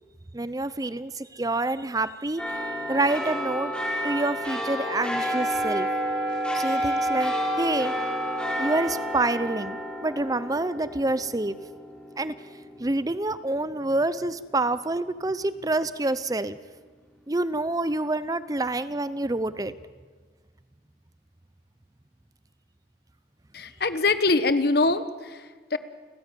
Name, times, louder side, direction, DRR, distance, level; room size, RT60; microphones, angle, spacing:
voice 1, 0.3-2.6 2.9-3.7 4.0-5.9 6.5-8.0 8.6-11.6 12.2-12.3 12.8-16.6 17.3-19.7, right 2 dB, 20° right, 15 dB, 0.6 m, -27 dB
sound 1, 2.4-13.1 13.6-13.7, equal, 5° left, 4.4 m, -29 dB
voice 2, 23.5-25.8, left 3 dB, 60° left, 12 dB, 1.3 m, -24 dB
29.5 x 15.0 x 9.2 m, 1.5 s
head